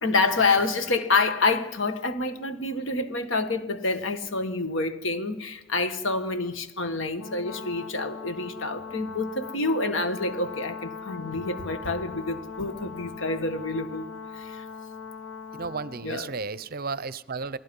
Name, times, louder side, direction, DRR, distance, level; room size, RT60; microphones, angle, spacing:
voice 1, 0.0-14.0 14.4-14.6 16.0-16.3, left 3 dB, 65° left, 1.7 m, -27 dB
Brass instrument, 7.2-16.1, left 5 dB, 85° left, 2.4 m, -40 dB
voice 2, 15.5-17.6, right 4 dB, 45° right, 0.6 m, -33 dB
28.5 x 19.0 x 5.4 m
head